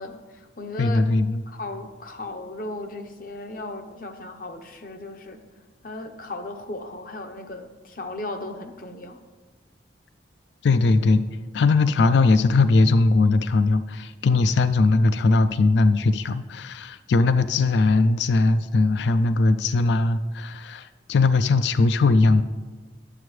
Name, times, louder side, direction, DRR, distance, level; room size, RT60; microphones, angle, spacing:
voice 1, 0.0-1.1 1.5-5.4 5.8-9.2, left 2 dB, 45° left, 6 dB, 0.7 m, -36 dB
voice 2, 0.8-1.4 10.6-11.2 11.5-22.4, left 3 dB, 70° left, 13 dB, 0.3 m, -20 dB
11.0 x 7.6 x 3.2 m, 1.3 s
head